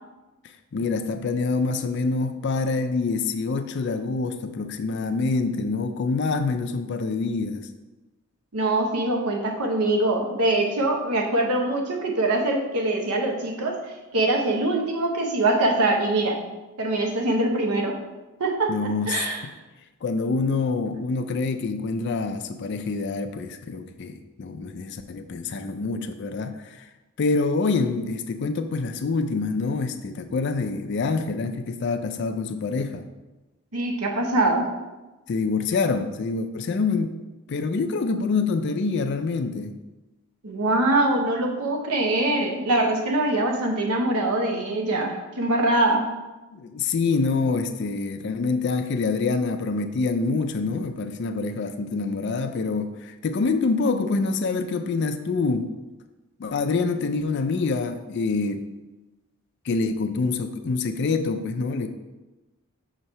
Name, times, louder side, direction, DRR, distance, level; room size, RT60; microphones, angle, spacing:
voice 1, 0.7-7.7 18.7-19.5 20.0-26.9 27.2-33.1 35.3-37.2 37.5-39.7 46.5-55.7 56.4-58.6 59.7-61.9, left 4 dB, 50° left, 7 dB, 0.3 m, -26 dB
voice 2, 8.5-16.5 16.8-18.0 18.4-18.7 19.1-19.4 33.7-34.7 40.4-46.2, right 2 dB, 85° right, 2 dB, 0.8 m, -23 dB
6.3 x 3.0 x 5.4 m, 1.1 s
head